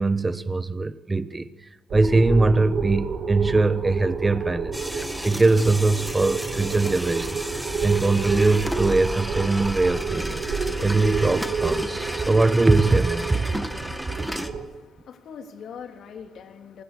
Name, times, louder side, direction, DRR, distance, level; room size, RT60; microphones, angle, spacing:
voice 1, 0.0-1.5 1.9-7.4 7.8-10.4 10.8-13.4, right 3 dB, 20° right, 1.2 m, -22 dB
sound 1, 1.9-14.6, right 4 dB, 60° right, 5.6 m, -29 dB
sound 2, 4.7-14.5, equal, ahead, 2.0 m, -33 dB
voice 2, 14.4-16.8, left 6 dB, 65° left, 3.1 m, -42 dB
27.5 x 20.0 x 6.9 m
cardioid pair, 90°, 0 cm